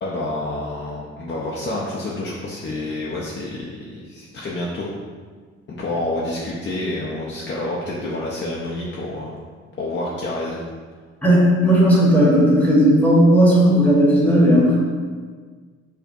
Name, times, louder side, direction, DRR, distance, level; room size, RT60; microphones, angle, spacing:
voice 1, 0.0-4.9 5.8-9.3 9.8-10.6, left 2 dB, 40° left, -5 dB, 0.5 m, -28 dB
voice 2, 11.2-14.7, equal, 5° left, -6 dB, 1.2 m, -15 dB
4.9 x 2.1 x 2.6 m, 1.5 s
cardioid pair, 90°, 30 cm